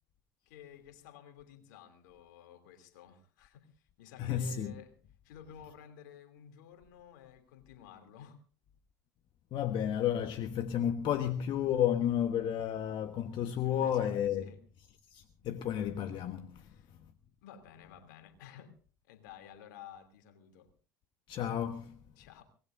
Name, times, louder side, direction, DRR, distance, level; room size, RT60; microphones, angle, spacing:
voice 1, 0.5-3.7 4.0-4.9 5.2-8.4 13.6-14.6 16.6-16.9 17.4-18.7 19.1-20.7 22.2-22.4, left 9 dB, 75° left, 3.0 m, -53 dB
voice 2, 4.2-4.7 9.5-14.5 15.1-16.7 21.3-22.0, left 10 dB, 50° left, 1.3 m, -32 dB
24.5 x 19.5 x 2.7 m
hypercardioid pair, 75°, 10 cm